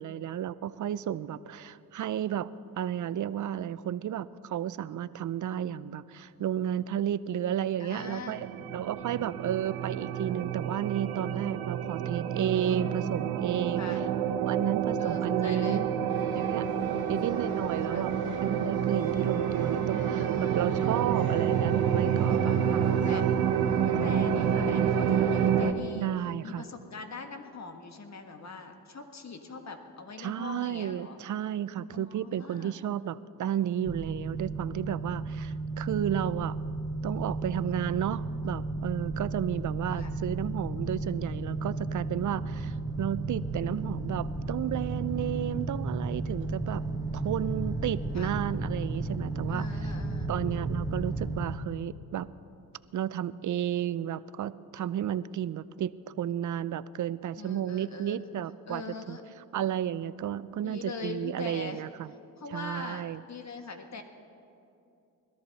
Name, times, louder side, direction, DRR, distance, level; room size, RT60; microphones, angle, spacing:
voice 1, 0.0-8.5 8.7-13.8 14.5-15.9 16.3-16.7 17.1-18.1 18.4-23.2 24.0-24.1 26.0-26.7 30.2-36.6 37.0-46.9 47.1-49.7 50.3-52.3 52.9-59.2 59.5-62.1 62.5-63.2, right 10 dB, 55° right, 16 dB, 0.5 m, -32 dB
voice 2, 7.8-8.4 9.3-9.4 13.8-14.0 15.0-15.8 16.8-17.1 17.9-18.0 20.1-20.8 22.3-22.6 23.0-23.2 23.8-26.1 26.4-31.2 31.9-32.8 39.9-40.1 48.1-48.3 49.5-50.3 57.4-58.2 58.7-59.2 60.6-61.8 62.4-64.0, left 4 dB, 50° left, 5 dB, 1.6 m, -42 dB
sound 1, 8.0-25.7, right 8 dB, 85° right, 0.8 m, -28 dB
sound 2, 16.1-25.5, left 1 dB, 85° left, 3.1 m, -49 dB
sound 3, 33.8-51.5, right 3 dB, 10° right, 1.2 m, -33 dB
21.0 x 13.5 x 4.1 m, 2.7 s
cardioid pair, 65°, 35 cm